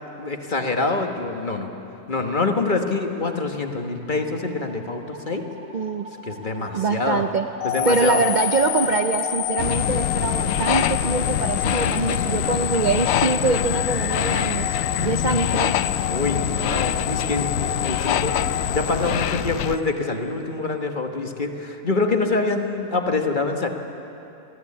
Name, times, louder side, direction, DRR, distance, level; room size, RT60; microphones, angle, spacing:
voice 1, 0.2-1.7 2.1-5.4 6.2-7.2 7.6-8.2 12.1-12.3 16.1-23.7, left 3 dB, 35° left, 4 dB, 1.4 m, -25 dB
sound 1, 3.5-9.4, right 1 dB, 5° right, 1.3 m, -40 dB
voice 2, 5.7-6.1 6.7-7.5 7.8-15.7, right 4 dB, 50° right, 7 dB, 0.6 m, -24 dB
sound 2, 7.6-19.8, left 11 dB, 90° left, 1.2 m, -28 dB
sound 3, 9.6-19.8, left 10 dB, 75° left, 1.0 m, -25 dB
22.5 x 16.0 x 8.5 m, 2.9 s
omnidirectional pair, 1.4 m